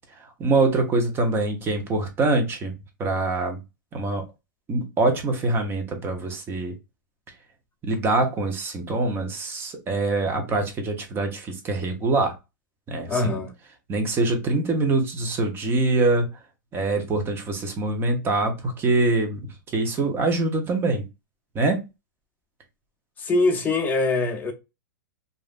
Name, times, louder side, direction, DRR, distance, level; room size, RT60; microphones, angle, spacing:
voice 1, 0.4-2.7 3.0-3.6 3.9-4.2 4.7-6.7 7.8-12.3 12.9-13.4 13.9-16.3 16.7-19.4 19.7-21.0 21.5-21.8, right 2 dB, 20° right, 0.8 m, -24 dB
voice 2, 13.1-13.5 23.2-24.5, left 3 dB, 15° left, 0.7 m, -23 dB
3.1 x 2.5 x 2.4 m
hypercardioid pair, 135°, 11 cm